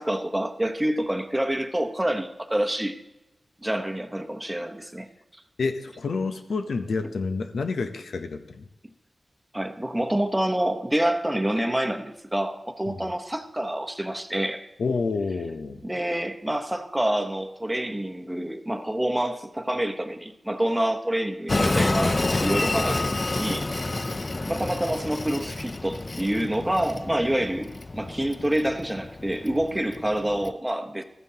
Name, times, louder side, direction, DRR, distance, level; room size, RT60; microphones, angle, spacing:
voice 1, 0.0-3.0 3.6-5.1 9.5-14.7 15.8-23.1 23.3-23.9 24.5-31.0, right 1 dB, 10° right, 0.9 m, -27 dB
voice 2, 5.6-8.7 12.9-13.1 14.8-15.8, left 4 dB, 85° left, 0.6 m, -29 dB
Train, 21.5-30.5, left 2 dB, 40° left, 0.4 m, -29 dB
13.5 x 9.1 x 2.8 m
cardioid pair, 55°, 0 cm